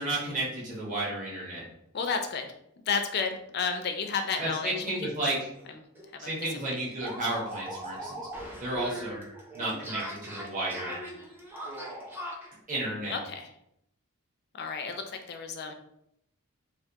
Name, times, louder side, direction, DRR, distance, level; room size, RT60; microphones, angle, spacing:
voice 1, 0.0-1.6 4.4-5.5 6.2-8.3 8.6-9.2 9.5-10.9 12.7-13.1, right 2 dB, 35° right, -7 dB, 1.2 m, -32 dB
voice 2, 1.9-2.5 2.9-5.1 6.1-6.3 6.7-6.8 13.1-13.5 14.6-15.7, left 5 dB, 45° left, 5 dB, 0.4 m, -31 dB
sound 1, 5.5-5.7 6.0-6.1 6.4-12.5, right 1 dB, 10° right, 0.6 m, -40 dB
3.4 x 2.6 x 2.8 m, 0.77 s
head